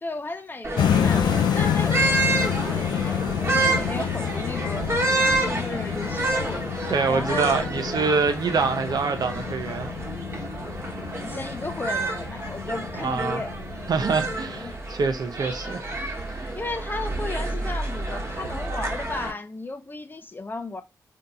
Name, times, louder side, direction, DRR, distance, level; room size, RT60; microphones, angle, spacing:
voice 1, 0.0-4.9 5.4-6.6 7.1-7.9 11.2-13.5 14.6-14.7 16.5-20.8, left 2 dB, 30° left, 0.6 m, -35 dB
sound 1, 0.6-19.3, right 2 dB, 35° right, 1.2 m, -29 dB
sound 2, 0.8-14.7, left 9 dB, 85° left, 0.4 m, -28 dB
voice 2, 6.9-9.9 12.9-13.4 13.9-15.8 16.3-16.4, right 5 dB, 65° right, 0.6 m, -25 dB
2.7 x 2.3 x 3.9 m
cardioid pair, 65°, 7 cm